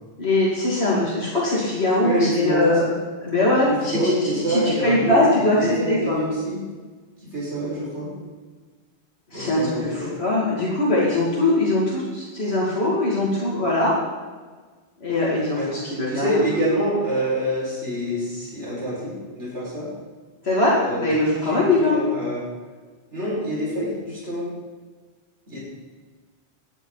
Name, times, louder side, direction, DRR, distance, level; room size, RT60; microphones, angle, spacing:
voice 1, 0.2-2.8 3.2-3.9 4.5-6.2 9.3-14.0 15.0-16.4 20.4-21.9, left 2 dB, 70° left, -6 dB, 2.9 m, -21 dB
voice 2, 2.0-2.9 3.7-6.6 7.2-8.1 9.3-10.1 15.5-15.7 16.1-19.9 20.8-22.4 23.1-24.5 25.5-25.6, equal, 85° right, -7 dB, 6.3 m, -26 dB
18.5 x 12.0 x 4.1 m, 1.4 s
omnidirectional pair, 1.1 m